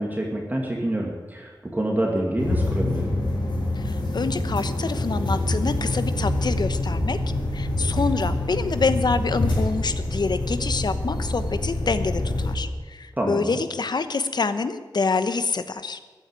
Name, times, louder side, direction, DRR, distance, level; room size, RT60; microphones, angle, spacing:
voice 1, 0.0-3.1 13.2-13.6, right 1 dB, 20° right, -1 dB, 2.3 m, -27 dB
sound 1, 2.4-12.5, left 2 dB, 80° left, 5.4 m, -26 dB
voice 2, 3.8-7.2 7.5-16.0, left 4 dB, 65° left, 11 dB, 1.0 m, -26 dB
14.5 x 9.4 x 9.0 m, 1.4 s
wide cardioid pair, 105°, 8 cm